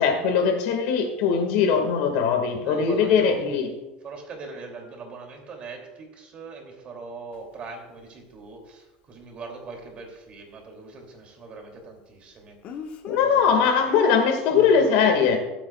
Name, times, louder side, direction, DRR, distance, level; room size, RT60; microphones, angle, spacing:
voice 1, 0.0-3.7 13.1-15.4, left 6 dB, 70° left, 4 dB, 1.8 m, -21 dB
voice 2, 2.6-3.4 4.0-12.6 13.1-13.8, right 4 dB, 35° right, 2 dB, 2.7 m, -41 dB
Speech, 7.3-7.4 12.6-13.3 14.5-14.8, left 6 dB, 45° left, 1.2 m, -38 dB
20.0 x 8.6 x 2.4 m, 1.1 s
supercardioid pair, 125°, 3 cm